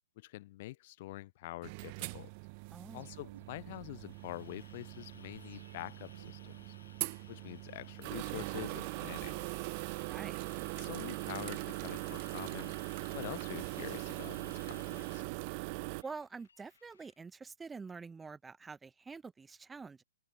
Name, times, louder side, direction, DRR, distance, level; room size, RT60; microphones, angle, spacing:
voice 1, 0.2-2.3 2.9-6.8 7.3-9.4 10.8-12.7 13.1-15.2, left 18 dB, 40° left, 0.8 m, -46 dB
sound 1, 1.6-16.0, right 31 dB, 35° right, 0.7 m, -41 dB
voice 2, 2.7-3.1 10.0-10.4 16.0-20.0, right 4 dB, 10° right, 1.4 m, -47 dB
sound 2, 3.0-4.5 5.3-7.5 8.4-10.6 11.4-13.8 14.5-16.1 16.4-16.5, right 8 dB, 65° right, 3.6 m, -62 dB
sound 3, 3.7-17.2, left 6 dB, 80° left, 6.9 m, -61 dB
open air
hypercardioid pair, 150°, 0 cm